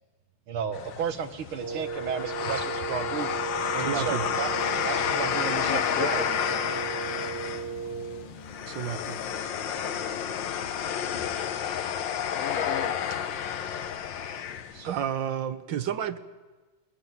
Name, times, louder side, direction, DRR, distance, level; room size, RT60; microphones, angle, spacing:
voice 1, 0.5-3.3 3.7-4.5 4.8-6.2 14.7-14.9, right 7 dB, 80° right, 9 dB, 2.1 m, -33 dB
sound 1, 0.7-15.0, left 9 dB, 70° left, 1.6 m, -31 dB
Wind instrument woodwind instrument, 1.6-8.3, right 6 dB, 35° right, 1.1 m, -36 dB
sound 2, 3.6-11.5, left 2 dB, 85° left, 2.6 m, -48 dB
voice 2, 3.8-4.2 8.7-9.2 14.8-16.2, right 9 dB, 65° right, 11 dB, 1.5 m, -31 dB
voice 3, 5.4-7.0 12.3-13.1, left 5 dB, 50° left, 8 dB, 1.2 m, -37 dB
21.5 x 20.5 x 9.4 m, 1.3 s
omnidirectional pair, 2.3 m